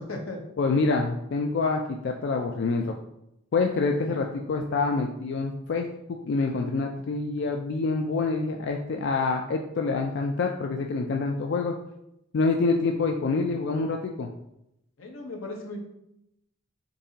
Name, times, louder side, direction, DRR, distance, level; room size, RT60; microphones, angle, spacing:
voice 1, 0.0-0.4 4.1-4.2 15.0-15.8, left 2 dB, 85° left, 1 dB, 0.9 m, -36 dB
voice 2, 0.6-2.9 3.5-11.8 12.3-14.3, left 3 dB, 60° left, 3 dB, 0.3 m, -26 dB
6.8 x 2.7 x 2.8 m, 0.83 s
head